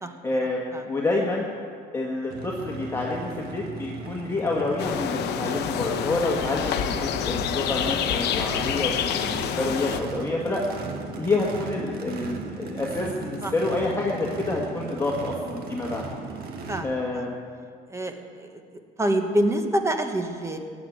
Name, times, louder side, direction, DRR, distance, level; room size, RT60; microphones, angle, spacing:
voice 1, 0.2-1.5 1.9-10.6 11.1-16.0 16.8-17.3, left 2 dB, 15° left, -3 dB, 1.7 m, -28 dB
Race car auto racing / Idling / Accelerating revving vroom, 2.3-16.8, right 4 dB, 65° right, 1.8 m, -37 dB
sound 1, 4.8-10.0, left 9 dB, 85° left, 0.9 m, -27 dB
voice 2, 16.4-17.3 17.9-18.6 19.0-20.6, right 1 dB, 15° right, 6 dB, 1.4 m, -27 dB
14.5 x 7.4 x 9.3 m, 2.1 s
cardioid pair, 110°, 17 cm